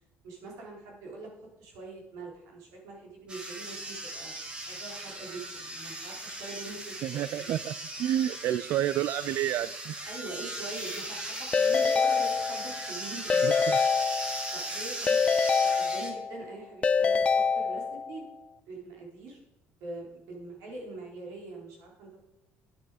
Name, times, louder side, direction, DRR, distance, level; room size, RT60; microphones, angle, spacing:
voice 1, 0.2-1.3 1.6-4.4 4.6-7.5 10.1-13.5 14.5-18.3 18.7-19.4 19.8-22.2, right 3 dB, 75° right, -1 dB, 4.2 m, -43 dB
sound 1, 3.3-16.1, right 1 dB, 20° right, 2.1 m, -38 dB
voice 2, 7.0-7.7 8.0-9.9 13.4-13.8, right 12 dB, 55° right, 16 dB, 0.3 m, -29 dB
Keyboard (musical) / Ringtone, 11.5-12.9 13.3-14.6 15.1-16.4 16.8-18.2, left 5 dB, 25° left, 0.4 m, -25 dB
10.5 x 9.0 x 5.0 m, 0.89 s
cardioid pair, 130°, 5 cm